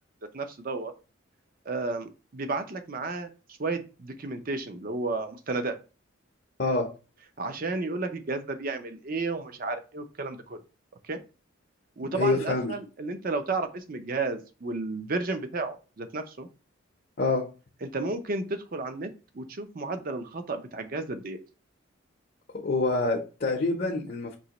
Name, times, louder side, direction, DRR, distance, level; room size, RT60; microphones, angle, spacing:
voice 1, 0.3-0.9 1.7-3.3 3.6-5.8 7.4-10.6 11.0-11.2 12.0-16.5 17.8-19.1 19.3-21.4, right 3 dB, 45° right, 8 dB, 0.5 m, -32 dB
voice 2, 6.6-6.9 12.1-12.7 17.2-17.5 22.6-24.4, left 3 dB, 45° left, 0 dB, 0.7 m, -26 dB
5.3 x 2.8 x 2.9 m, 0.33 s
head